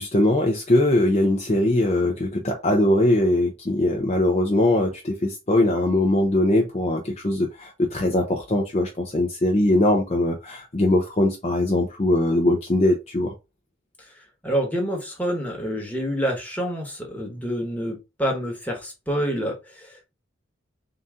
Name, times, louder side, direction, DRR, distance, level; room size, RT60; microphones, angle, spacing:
voice 1, 0.0-13.3, left 1 dB, 35° left, 0.6 m, -21 dB
voice 2, 14.4-20.1, equal, 10° left, 1.2 m, -27 dB
3.8 x 2.7 x 3.6 m
head